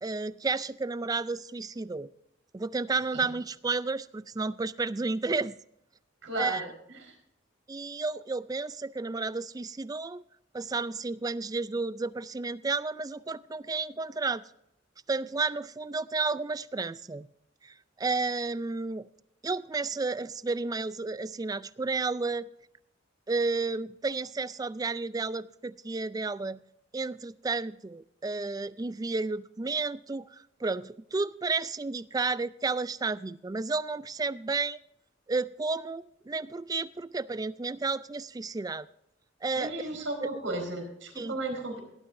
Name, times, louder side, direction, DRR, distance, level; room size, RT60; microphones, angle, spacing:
voice 1, 0.0-2.1 2.5-5.6 6.4-6.6 7.7-10.2 10.5-14.4 15.1-17.3 17.6-19.1 19.4-22.5 23.3-26.6 26.9-34.8 35.3-38.9 39.4-39.7 41.2-41.3, right 3 dB, 20° right, 17 dB, 0.4 m, -32 dB
voice 2, 6.2-7.2 39.5-41.8, right 2 dB, 80° right, 3 dB, 4.5 m, -35 dB
18.0 x 12.5 x 2.6 m, 0.75 s
head